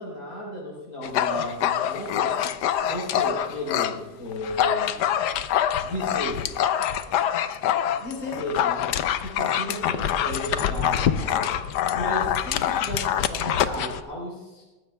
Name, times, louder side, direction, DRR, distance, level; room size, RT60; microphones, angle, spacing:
voice 1, 0.0-2.3 2.8-5.1 5.8-6.5 7.9-8.9 9.2-11.5 11.9-14.6, equal, 55° left, -5 dB, 4.7 m, -34 dB
Dog, 1.0-4.0 4.3-14.0, left 10 dB, 70° left, 1.2 m, -25 dB
20.5 x 15.0 x 2.3 m, 1.1 s
omnidirectional pair, 2.0 m